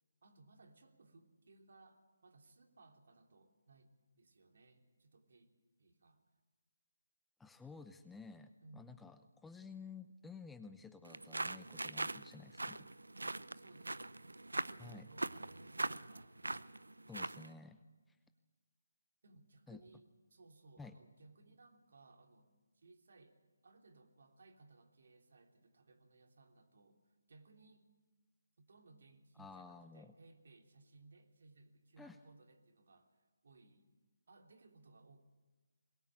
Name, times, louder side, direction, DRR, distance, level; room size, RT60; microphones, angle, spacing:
voice 1, 0.2-5.5 5.8-6.2 8.6-9.2 13.2-14.2 14.5-16.6 19.2-23.4 23.6-27.0 27.3-27.9 28.6-33.9 34.3-35.2, right 3 dB, 60° right, 4 dB, 2.9 m, -63 dB
voice 2, 7.4-12.9 14.8-15.1 17.1-17.8 19.7-19.8 20.8-21.0 29.4-30.1 32.0-32.2, left 4 dB, 5° left, 9 dB, 0.7 m, -53 dB
sound 1, 11.0-17.5, right 2 dB, 90° right, 0.7 m, -42 dB
21.5 x 18.0 x 8.8 m, 1.3 s
figure-of-eight pair, 155°, 0 cm